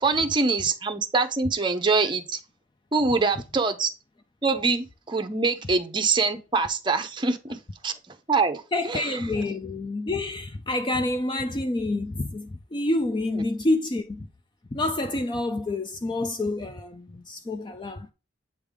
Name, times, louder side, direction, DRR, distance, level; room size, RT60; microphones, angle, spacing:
voice 1, 0.0-2.4 2.9-3.9 4.4-7.9 8.3-8.6 8.9-9.1, right 4 dB, 25° right, 0.7 m, -24 dB
voice 2, 8.7-14.3 14.7-18.1, left 2 dB, 25° left, 0.4 m, -28 dB
8.0 x 3.4 x 3.5 m
head